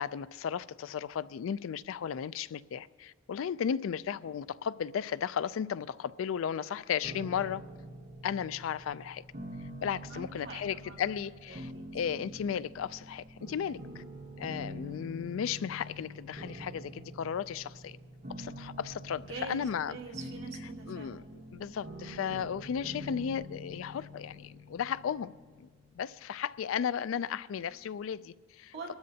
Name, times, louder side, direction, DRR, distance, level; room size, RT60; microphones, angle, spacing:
voice 1, 0.0-7.6 8.2-9.2 9.8-14.0 14.4-18.0 18.4-20.0 20.9-25.3 25.6-25.7 25.9-28.7, left 8 dB, 90° left, 0.3 m, -35 dB
sound 1, 7.0-26.0, equal, 45° right, 1.1 m, -46 dB
voice 2, 10.1-11.1 11.5-11.9 19.2-21.2 28.7-29.0, right 3 dB, 70° right, 2.1 m, -44 dB
23.5 x 12.5 x 2.8 m
head